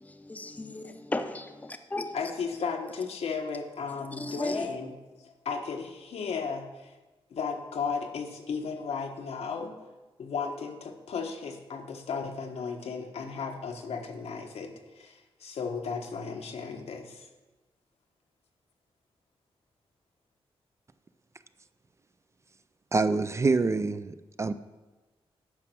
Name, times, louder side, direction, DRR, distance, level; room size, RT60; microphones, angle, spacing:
voice 1, 0.0-2.2 4.2-4.8, left 2 dB, 15° left, 0.7 m, -35 dB
voice 2, 2.1-4.9 5.2-6.9 7.3-9.7 10.2-17.3, left 5 dB, 85° left, 1.2 m, -35 dB
voice 3, 22.9-24.5, right 3 dB, 25° right, 0.3 m, -26 dB
9.6 x 5.9 x 6.1 m
wide cardioid pair, 125°, 10 cm